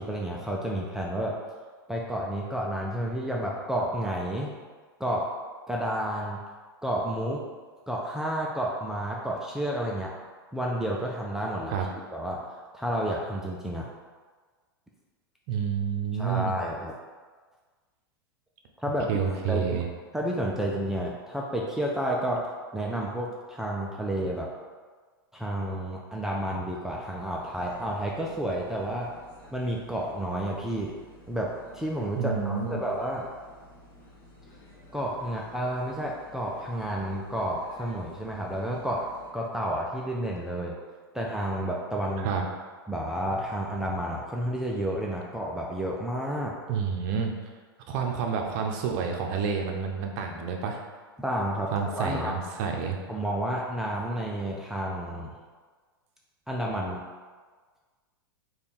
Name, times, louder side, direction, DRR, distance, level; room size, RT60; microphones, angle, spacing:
voice 1, 0.0-1.4 1.9-4.5 5.0-5.3 5.7-6.4 6.8-7.4 7.9-10.1 10.5-11.7 12.1-12.4 12.7-13.9 16.1-16.9 18.8-19.8 20.1-22.5 22.7-24.5 25.3-29.1 29.5-30.9 31.3-33.3 34.9-39.0 39.3-40.8 41.1-42.3 42.9-46.5 51.2-52.3 53.1-55.4 56.5-57.0, right 1 dB, 5° right, -3 dB, 0.4 m, -30 dB
voice 2, 15.5-16.6 19.1-19.9 32.1-32.8 42.2-42.4 46.7-47.3 47.9-50.8 51.7-53.0, right 6 dB, 50° right, 2 dB, 0.6 m, -29 dB
sound 1, 27.4-39.3, left 1 dB, 50° left, 1.3 m, -52 dB
3.4 x 2.4 x 4.2 m, 1.5 s
hypercardioid pair, 100°, 12 cm